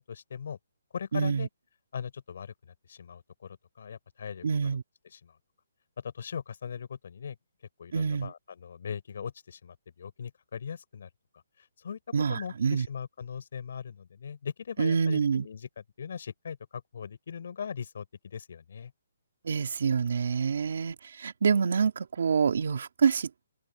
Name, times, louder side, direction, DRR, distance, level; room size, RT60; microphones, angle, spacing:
voice 1, 0.1-0.6 0.9-1.5 1.9-4.8 5.0-5.3 6.0-7.4 7.8-11.1 11.6-12.0 12.3-18.9, left 7 dB, 55° left, 4.8 m, -40 dB
voice 2, 1.1-1.5 4.4-4.8 7.9-8.3 12.1-12.9 14.8-15.5 19.4-23.5, right 6 dB, 60° right, 2.8 m, -27 dB
open air
hypercardioid pair, 170°, 0 cm